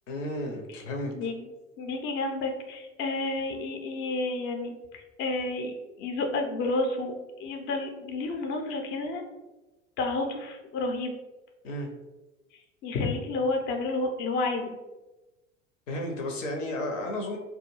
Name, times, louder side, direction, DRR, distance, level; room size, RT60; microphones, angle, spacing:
voice 1, 0.1-1.1 11.6-11.9 15.9-17.4, left 1 dB, 80° left, 2 dB, 0.6 m, -33 dB
voice 2, 1.8-7.1 7.4-9.2 10.0-11.1 12.8-14.7, left 2 dB, 30° left, 4 dB, 0.4 m, -30 dB
2.3 x 2.2 x 2.9 m, 1.1 s
figure-of-eight pair, 75°, 37 cm